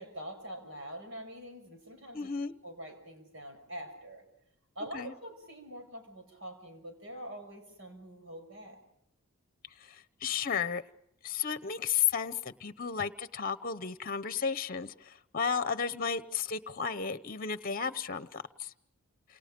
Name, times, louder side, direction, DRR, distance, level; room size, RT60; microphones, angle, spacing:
voice 1, 0.0-2.3 2.6-4.2 4.7-8.8, equal, 65° right, 6.6 m, -45 dB
voice 2, 2.1-2.5 4.9-5.1 9.8-10.8 11.2-18.7, left 6 dB, 45° left, 0.9 m, -33 dB
30.0 x 28.0 x 5.3 m
head